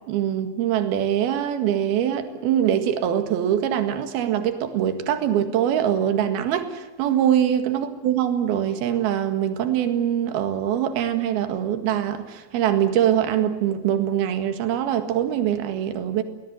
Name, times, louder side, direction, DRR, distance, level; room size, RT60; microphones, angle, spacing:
voice 1, 0.1-16.2, right 10 dB, 60° right, 8 dB, 3.3 m, -23 dB
23.5 x 18.0 x 9.6 m, 1.2 s
omnidirectional pair, 5.6 m